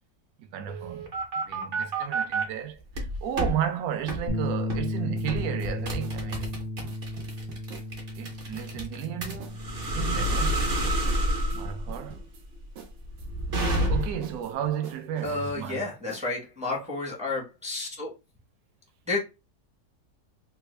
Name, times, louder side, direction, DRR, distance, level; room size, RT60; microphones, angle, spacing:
voice 1, 0.5-1.1 1.4-6.5 8.2-10.6 11.5-12.2 13.9-15.9, right 10 dB, 70° right, 0.9 m, -33 dB
sound 1, 0.7-2.4 2.9-3.6 4.1-4.2 4.7-4.9 5.3-14.3, right 1 dB, 40° right, 0.9 m, -29 dB
Bass guitar, 4.3-10.5, left 1 dB, 55° left, 0.6 m, -34 dB
sound 2, 5.2-8.3 8.5-9.1 9.4-9.6 9.8-11.6 11.9-12.4 12.8-15.7 16.1-16.3, right 6 dB, 85° right, 1.4 m, -47 dB
voice 2, 15.2-18.1 19.1-19.2, left 3 dB, 5° right, 0.5 m, -31 dB
3.4 x 2.3 x 3.2 m
omnidirectional pair, 1.9 m